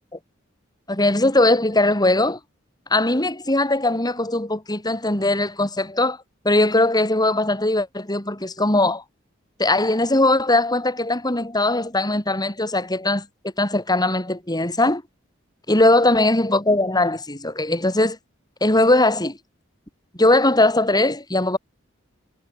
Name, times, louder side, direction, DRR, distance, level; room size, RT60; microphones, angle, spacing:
voice 1, 0.9-2.4 2.9-6.2 6.4-9.0 9.6-13.2 13.6-15.0 15.7-18.2 18.6-19.4 20.2-21.6, left 2 dB, 20° left, 6.5 m, -20 dB
head